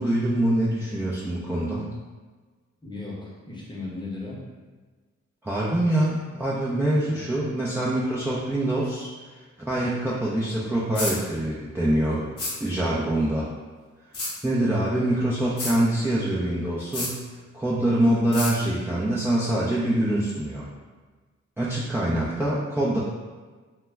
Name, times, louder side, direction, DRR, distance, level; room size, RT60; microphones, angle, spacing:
voice 1, 0.0-1.9 5.4-9.1 9.7-12.3 12.6-13.5 14.4-17.3 17.5-20.7 21.6-23.0, right 1 dB, 10° right, -8 dB, 0.4 m, -24 dB
voice 2, 2.8-4.4 7.1-7.2, left 2 dB, 15° left, -5 dB, 0.8 m, -36 dB
sound 1, 11.0-11.2 12.4-12.6 14.1-14.3 15.6-15.8 16.9-17.1 18.3-18.5, left 2 dB, 50° left, 0.7 m, -29 dB
2.1 x 2.1 x 3.4 m, 1.4 s
cardioid pair, 65°, 30 cm